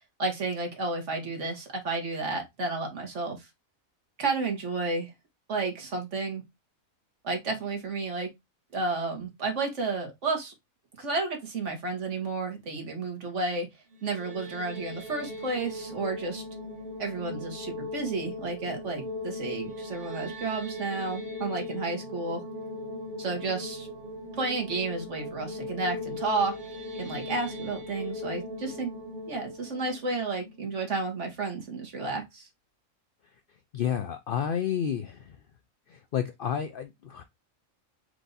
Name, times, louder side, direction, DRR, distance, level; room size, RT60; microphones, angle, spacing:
voice 1, 0.2-3.5 4.2-5.1 5.5-6.4 7.2-8.3 8.7-10.5 11.0-13.7 14.0-16.4 17.0-22.4 23.2-23.9 24.3-26.5 26.9-28.9 29.3-32.5, right 3 dB, 60° right, 1.6 m, -31 dB
sound 1, 13.9-31.0, left 2 dB, 35° right, 1.2 m, -39 dB
voice 2, 33.7-35.3 35.9-37.2, left 9 dB, 90° left, 0.4 m, -30 dB
4.6 x 2.6 x 3.9 m
omnidirectional pair, 1.5 m